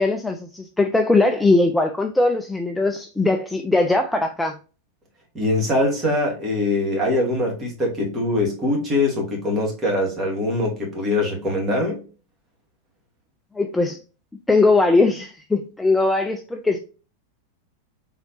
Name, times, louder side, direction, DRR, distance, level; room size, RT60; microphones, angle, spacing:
voice 1, 0.0-4.6 13.6-14.0 14.5-16.8, left 3 dB, 5° left, 0.3 m, -20 dB
voice 2, 5.3-12.0, left 2 dB, 20° right, 1.8 m, -22 dB
3.9 x 3.2 x 2.9 m
figure-of-eight pair, 90°, 0 cm